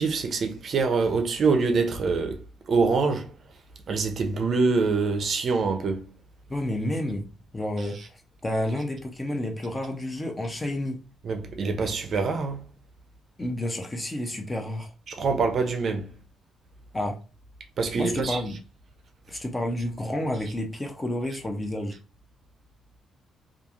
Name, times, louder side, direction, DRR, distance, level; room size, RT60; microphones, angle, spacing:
voice 1, 0.0-2.4 2.7-3.3 3.9-6.1 11.2-12.6 15.1-16.1 17.8-18.4, right 4 dB, 45° right, 0.5 m, -25 dB
voice 2, 6.5-7.2 7.5-11.0 13.4-14.9 16.9-17.2 17.9-18.6 19.3-21.9, left 1 dB, 15° left, 0.4 m, -30 dB
2.9 x 2.4 x 2.4 m
cardioid pair, 150°, 0 cm